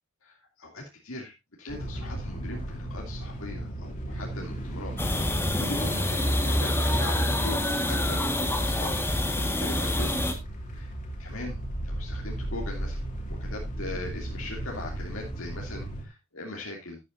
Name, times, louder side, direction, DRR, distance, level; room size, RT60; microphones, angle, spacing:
voice 1, 0.2-1.3 1.6-4.9 5.3-10.4 11.2-11.6 11.8-13.0 13.3-17.0, left 2 dB, 80° left, -1 dB, 2.8 m, -40 dB
sound 1, 1.7-16.1, right 1 dB, 40° left, 2.9 m, -36 dB
sound 2, 5.0-10.3, left 1 dB, 10° left, 1.6 m, -26 dB
13.0 x 11.0 x 2.6 m, 0.21 s
head